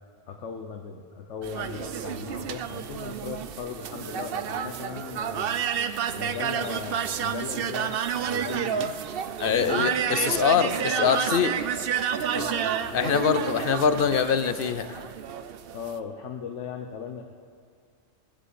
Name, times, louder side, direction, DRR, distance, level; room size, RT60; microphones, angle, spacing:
voice 1, 0.3-5.6 6.1-7.9 8.2-9.0 9.6-9.9 10.5-11.1 12.3-13.6 15.7-17.3, left 6 dB, 75° left, 3 dB, 1.2 m, -38 dB
sound 1, 1.4-16.0, right 8 dB, 60° right, 0.8 m, -30 dB
voice 2, 9.4-11.6 12.9-15.0, left 7 dB, 55° left, 11 dB, 0.7 m, -24 dB
19.5 x 7.6 x 8.2 m, 2.3 s
omnidirectional pair, 1.2 m